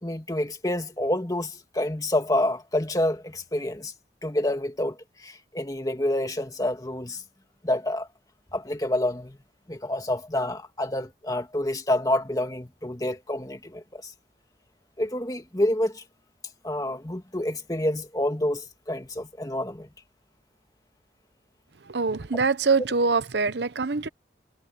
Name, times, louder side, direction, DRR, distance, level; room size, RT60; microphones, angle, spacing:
voice 1, 0.0-3.9 4.2-7.2 7.6-8.1 8.5-9.4 9.7-14.1 15.0-16.0 16.6-19.9, left 1 dB, 20° left, 1.9 m, -28 dB
voice 2, 21.9-24.1, right 4 dB, 75° right, 0.8 m, -24 dB
head